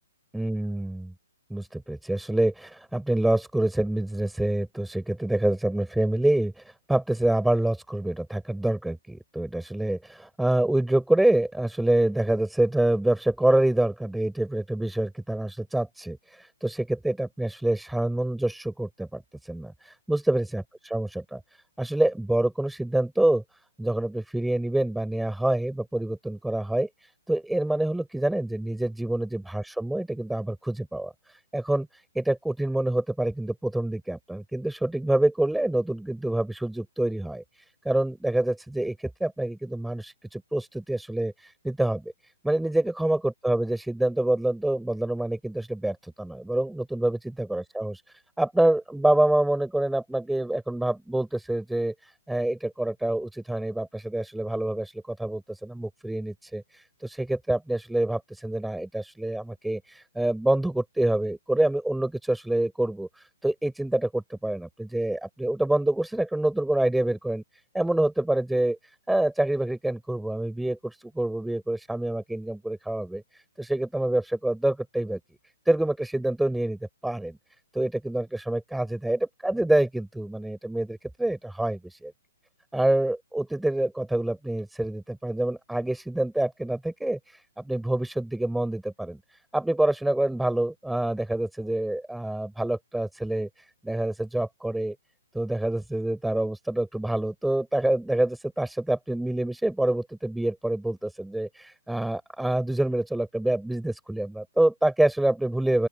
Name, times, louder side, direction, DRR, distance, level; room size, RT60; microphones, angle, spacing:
voice 1, 0.3-1.1 1.5-21.4 21.8-23.4 23.8-37.4 37.9-42.1 42.4-48.0 48.4-67.4 67.7-68.8 69.1-75.2 75.7-77.4 77.7-82.1 82.7-89.2 89.5-93.5 93.8-95.0 95.3-105.9, right 1 dB, ahead, 5.3 m, -26 dB
open air
figure-of-eight pair, 130°, 0 cm